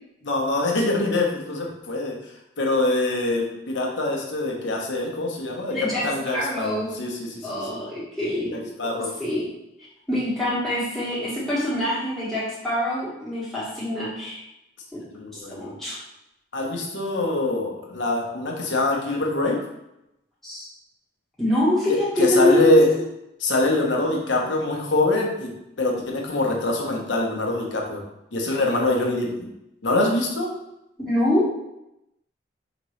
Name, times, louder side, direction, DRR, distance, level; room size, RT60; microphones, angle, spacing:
voice 1, 0.2-2.1 2.6-5.8 6.0-7.8 8.4-9.1 15.1-15.6 16.5-19.6 21.9-22.9 23.4-25.5 25.8-28.0 28.3-29.5 29.8-30.5, left 2 dB, 80° left, 0 dB, 0.9 m, -24 dB
voice 2, 5.7-6.0 6.3-6.9 7.4-9.5 10.1-14.4 14.9-15.0 15.3-16.0 20.4-20.7 21.4-22.8 28.8-29.4 31.0-31.5, left 1 dB, ahead, -10 dB, 1.5 m, -25 dB
5.1 x 3.0 x 3.1 m, 0.87 s
head